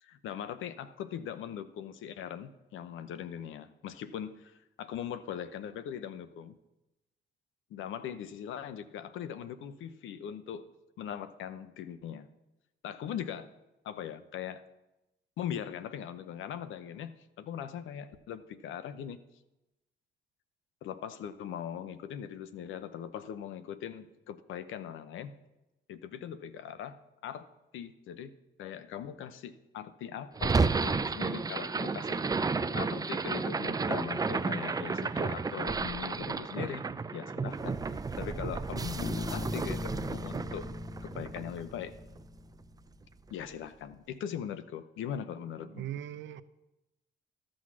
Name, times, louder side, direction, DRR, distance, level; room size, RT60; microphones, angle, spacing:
voice 1, 0.0-6.6 7.7-10.7 11.0-12.3 12.8-13.5 13.8-14.6 15.4-19.2 20.8-25.3 25.9-27.5 27.7-28.3 28.6-36.8 37.1-40.7 41.0-42.0 43.3-45.8, left 9 dB, 80° left, 13 dB, 0.8 m, -40 dB
sound 1, 30.4-42.6, right 4 dB, 20° right, 0.4 m, -32 dB
Bass guitar, 39.0-42.8, left 3 dB, 30° left, 0.7 m, -40 dB
voice 2, 45.6-46.4, right 11 dB, 70° right, 15 dB, 0.6 m, -39 dB
13.5 x 6.3 x 6.2 m, 0.97 s
cardioid pair, 90°, 20 cm